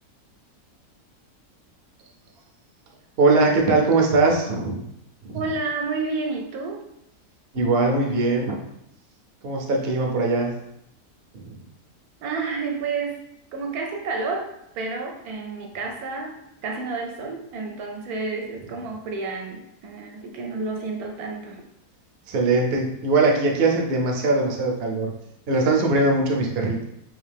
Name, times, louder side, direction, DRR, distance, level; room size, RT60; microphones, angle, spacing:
voice 1, 3.2-4.8 5.2-5.4 7.5-8.6 9.4-10.5 11.3-11.5 22.3-25.1 25.5-26.8, right 3 dB, 55° right, 1 dB, 0.7 m, -21 dB
voice 2, 5.3-6.8 12.2-13.2 13.5-14.5 14.7-21.6, right 4 dB, 75° right, 2 dB, 1.0 m, -30 dB
3.4 x 2.7 x 3.4 m, 0.78 s
omnidirectional pair, 1.7 m